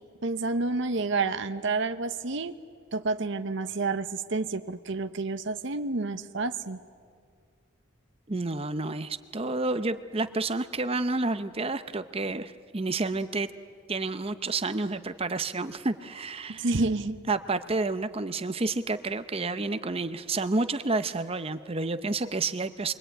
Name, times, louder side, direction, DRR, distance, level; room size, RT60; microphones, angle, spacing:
voice 1, 0.2-2.5 2.9-6.8 16.5-17.2, right 3 dB, 60° right, 8 dB, 0.8 m, -29 dB
voice 2, 8.3-13.5 13.9-16.7 17.3-22.9, right 3 dB, 30° right, 10 dB, 0.7 m, -30 dB
28.0 x 23.0 x 9.1 m, 2.1 s
head